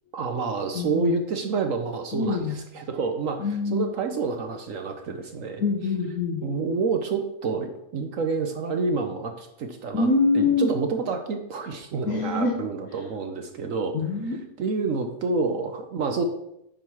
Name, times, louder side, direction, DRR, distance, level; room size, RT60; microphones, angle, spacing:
voice 1, 0.1-5.6 6.4-10.1 10.3-13.9 14.2-16.2, right 4 dB, 65° right, 6 dB, 1.2 m, -28 dB
voice 2, 0.7-1.1 2.1-2.6 3.4-3.9 5.6-6.6 9.9-10.7 12.1-12.6 13.9-14.4, left 3 dB, 75° left, 2 dB, 1.5 m, -24 dB
9.0 x 5.2 x 6.2 m, 0.82 s
omnidirectional pair, 1.5 m